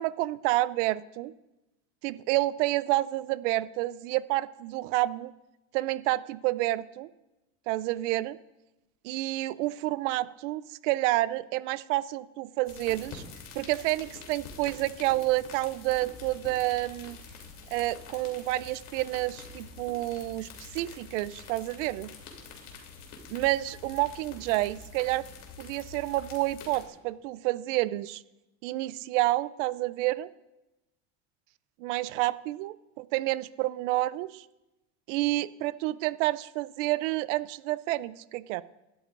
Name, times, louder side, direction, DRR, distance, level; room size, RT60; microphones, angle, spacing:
voice 1, 0.0-1.3 2.0-5.3 5.7-7.1 7.7-8.4 9.0-13.2 13.6-17.2 17.7-22.1 23.3-25.2 25.6-28.2 28.6-30.3 31.8-34.4 35.1-38.6, right 17 dB, 85° right, 19 dB, 0.5 m, -29 dB
sound 1, 12.6-26.9, left 5 dB, 50° left, 3.1 m, -46 dB
20.5 x 13.0 x 2.5 m, 0.98 s
cardioid pair, 140°, 36 cm